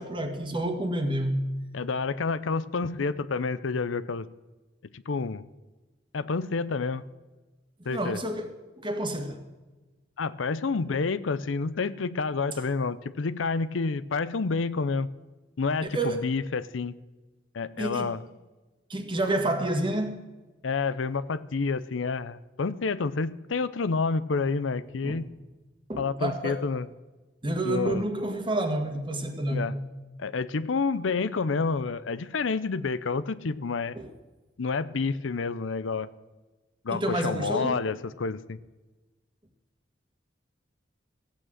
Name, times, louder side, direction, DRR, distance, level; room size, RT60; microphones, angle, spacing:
voice 1, 0.0-1.5 7.8-9.4 15.9-16.4 17.8-18.1 18.9-20.2 25.0-25.3 25.9-26.6 27.4-29.8 34.0-34.1 36.9-37.8, right 1 dB, 25° right, 1.7 m, -29 dB
voice 2, 1.7-4.3 4.9-5.4 6.1-7.0 7.9-8.2 10.2-15.1 15.6-16.9 17.5-18.2 20.6-25.3 26.0-26.9 27.6-28.0 29.5-29.7 30.2-34.0 34.6-36.1 36.8-38.6, left 4 dB, 85° left, 0.6 m, -29 dB
15.0 x 8.6 x 7.6 m
head